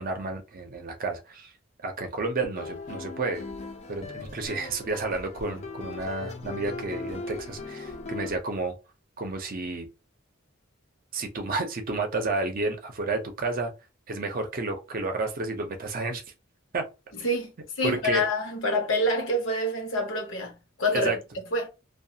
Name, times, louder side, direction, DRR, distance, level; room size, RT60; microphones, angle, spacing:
voice 1, 0.0-1.5 1.8-3.4 3.9-8.7 9.2-9.9 11.1-13.7 14.1-16.2 16.7-16.8 17.8-18.2 20.9-21.2, right 3 dB, 45° right, 0.6 m, -31 dB
sound 1, 2.5-8.4, left 3 dB, 35° left, 0.5 m, -38 dB
voice 2, 17.8-21.1 21.5-21.7, left 1 dB, 70° left, 0.9 m, -26 dB
2.3 x 2.3 x 2.7 m
head